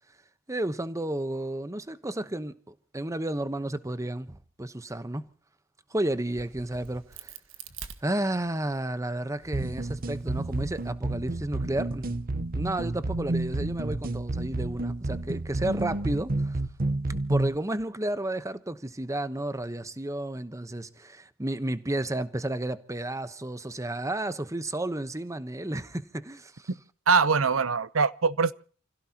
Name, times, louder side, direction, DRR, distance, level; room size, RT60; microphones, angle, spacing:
voice 1, 0.5-5.3 5.9-7.4 8.0-12.2 12.5-16.6 17.3-26.7, right 1 dB, 15° right, 1.0 m, -32 dB
Crack, 6.1-8.7 9.3-10.9, right 6 dB, 70° right, 1.6 m, -47 dB
sound 1, 9.5-17.5, right 2 dB, 45° right, 0.9 m, -30 dB
voice 2, 27.1-28.5, right 5 dB, 90° right, 0.8 m, -22 dB
29.5 x 16.5 x 2.9 m
head